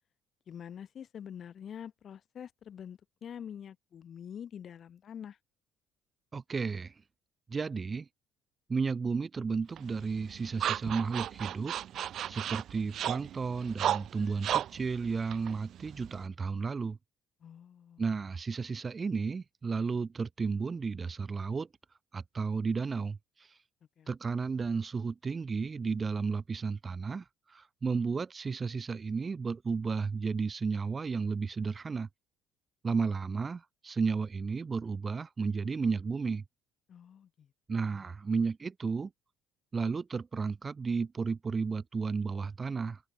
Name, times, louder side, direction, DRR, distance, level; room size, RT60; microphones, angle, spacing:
voice 1, 0.5-5.4 17.4-18.0 24.0-24.1 36.9-37.5 37.8-38.1, left 8 dB, 40° left, 6.0 m, -46 dB
voice 2, 6.3-6.9 7.5-8.1 8.7-11.7 12.3-17.0 18.0-21.7 22.1-23.6 24.1-32.1 32.8-36.4 37.7-39.1 39.7-43.0, right 5 dB, 25° right, 1.7 m, -33 dB
sound 1, 9.8-16.3, right 11 dB, 50° right, 1.3 m, -35 dB
open air
cardioid pair, 135°, 0 cm